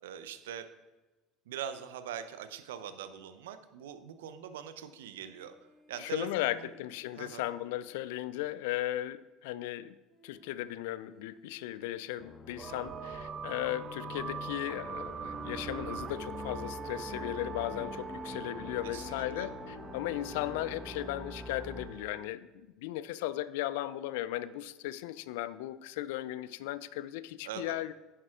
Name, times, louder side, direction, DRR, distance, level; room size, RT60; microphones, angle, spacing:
voice 1, 0.0-0.7 1.5-5.5 5.9-6.7 7.2-7.4 18.8-19.5 27.4-27.8, right 9 dB, 75° right, 10 dB, 0.7 m, -42 dB
sound 1, 5.1-8.9 10.1-13.2 15.2-18.7 19.7-21.3, left 1 dB, 5° right, 2.5 m, -62 dB
voice 2, 6.0-9.9 10.2-27.9, left 14 dB, 70° left, 17 dB, 0.4 m, -36 dB
sound 2, 12.2-21.9, left 5 dB, 35° left, 1.1 m, -45 dB
sound 3, 12.6-22.3, right 7 dB, 40° right, 0.5 m, -43 dB
11.0 x 10.0 x 2.5 m, 1.1 s
hypercardioid pair, 70°, 0 cm